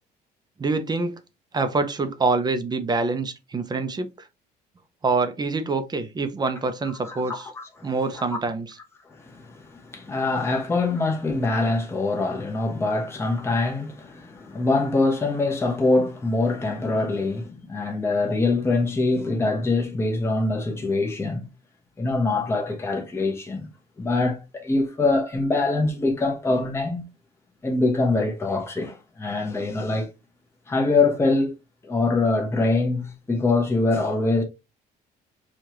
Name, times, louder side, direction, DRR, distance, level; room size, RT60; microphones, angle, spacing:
voice 1, 0.6-1.2 1.5-4.1 5.0-7.5 7.8-8.8, right 3 dB, 25° right, 0.6 m, -25 dB
voice 2, 7.0-8.4 9.1-21.5 22.0-23.7 24.0-27.0 27.6-30.1 30.7-31.5 31.8-34.4, left 3 dB, 15° left, 0.9 m, -24 dB
4.7 x 2.4 x 2.9 m
cardioid pair, 110°, 17 cm